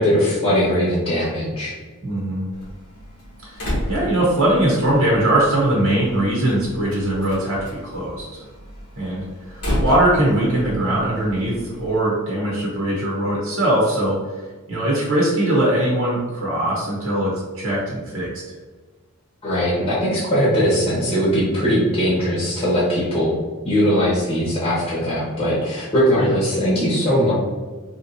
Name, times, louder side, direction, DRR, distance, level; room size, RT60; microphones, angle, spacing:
voice 1, 0.0-1.8 19.4-23.3 23.6-27.3, equal, 25° left, -7 dB, 0.9 m, -20 dB
voice 2, 2.0-2.5 3.4-8.4 9.0-14.4 14.7-18.3 26.2-26.3, right 1 dB, 65° right, -5 dB, 0.9 m, -21 dB
Slam, 2.5-12.0, equal, 90° left, 1.2 m, -32 dB
3.2 x 2.9 x 2.6 m, 1.3 s
head